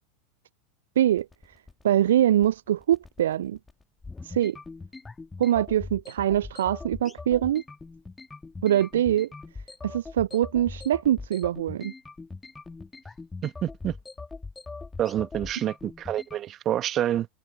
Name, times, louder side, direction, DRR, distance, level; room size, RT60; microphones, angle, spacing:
sound 1, 1.1-16.4, left 3 dB, 10° left, 2.0 m, -41 dB
voice 1, 1.8-3.6 4.2-4.6 5.4-7.6 8.6-9.3 9.8-11.9, right 11 dB, 65° right, 0.3 m, -23 dB
voice 2, 13.4-14.0 15.0-17.3, right 11 dB, 35° right, 1.6 m, -28 dB
figure-of-eight pair, 85°, 0 cm